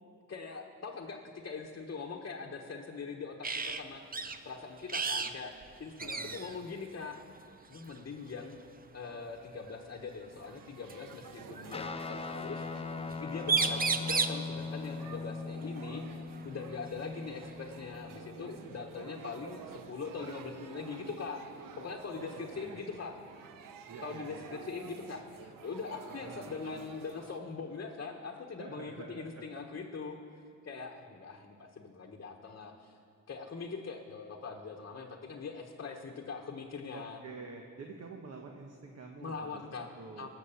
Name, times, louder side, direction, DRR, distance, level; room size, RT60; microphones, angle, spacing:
voice 1, 0.3-5.5 5.8-7.2 7.7-8.6 8.9-16.2 16.4-21.4 21.8-23.2 24.0-30.2 30.6-32.9 33.3-37.2 39.2-39.9 40.2-40.3, left 5 dB, 40° left, 0 dB, 1.1 m, -42 dB
sound 1, 3.4-3.8 4.1-4.4 4.9-5.3 5.6-5.7 6.0-6.6 7.7-8.0 9.7-9.8 10.9-11.7 13.1-13.2 13.4-14.4 16.4-16.5 16.9-17.9, right 5 dB, 30° right, 0.6 m, -32 dB
voice 2, 6.0-6.5 22.1-22.9 23.9-24.5 26.1-26.6 28.6-29.6 36.9-39.5 39.8-40.3, right 4 dB, 50° right, 2 dB, 1.3 m, -48 dB
sound 2, 10.3-27.4, right 6 dB, 90° right, 0.8 m, -50 dB
Guitar, 11.7-19.4, left 4 dB, 20° left, 0.4 m, -41 dB
18.0 x 6.5 x 7.1 m, 2.4 s
cardioid pair, 85°, 32 cm